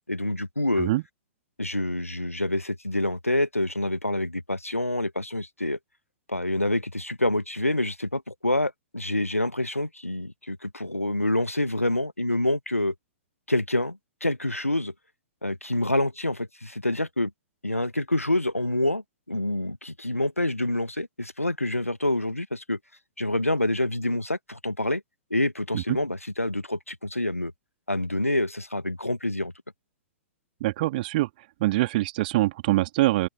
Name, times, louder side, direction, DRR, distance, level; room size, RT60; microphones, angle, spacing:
voice 1, 0.1-0.9 1.6-5.8 6.3-12.9 13.5-14.9 15.4-17.3 17.6-22.8 23.2-25.0 25.3-27.5 27.9-29.5, left 1 dB, 85° left, 1.3 m, -27 dB
voice 2, 30.6-31.3 31.6-33.3, right 18 dB, 40° right, 2.7 m, -24 dB
open air
figure-of-eight pair, 115°, 7 cm